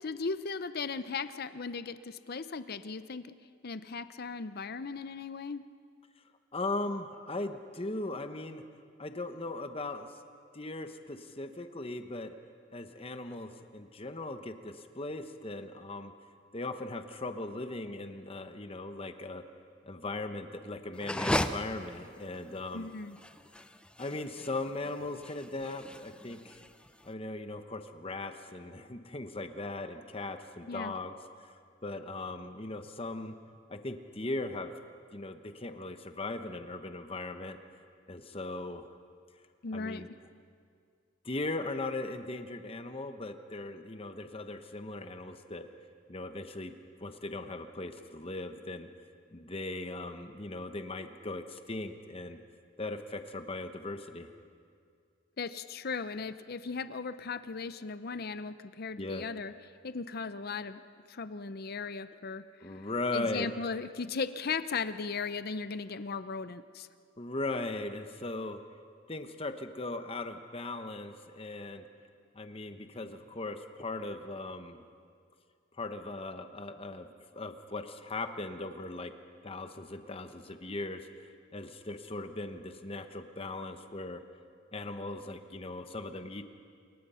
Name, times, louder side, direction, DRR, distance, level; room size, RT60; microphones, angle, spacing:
voice 1, 0.0-3.3 3.6-5.6 22.7-23.2 30.7-30.9 39.6-40.0 55.4-59.5 59.8-60.8 61.1-62.4 63.1-66.9, left 4 dB, 50° left, 12 dB, 0.6 m, -37 dB
voice 2, 6.5-8.6 9.0-10.1 10.5-12.3 12.7-16.1 16.5-19.4 19.8-22.9 24.0-26.6 27.0-31.1 31.4-31.5 31.8-33.3 33.7-34.7 35.1-37.6 38.1-38.9 39.7-40.1 41.2-45.7 46.1-46.7 47.0-48.9 49.3-52.4 52.8-54.3 59.0-59.2 62.6-63.5 67.2-68.6 69.1-71.9 72.3-74.8 75.8-79.1 79.4-84.2 84.7-86.4, left 2 dB, 30° left, 8 dB, 1.1 m, -38 dB
sound 1, 20.9-27.1, left 1 dB, 5° left, 0.6 m, -36 dB
27.5 x 23.0 x 5.7 m, 2.2 s
head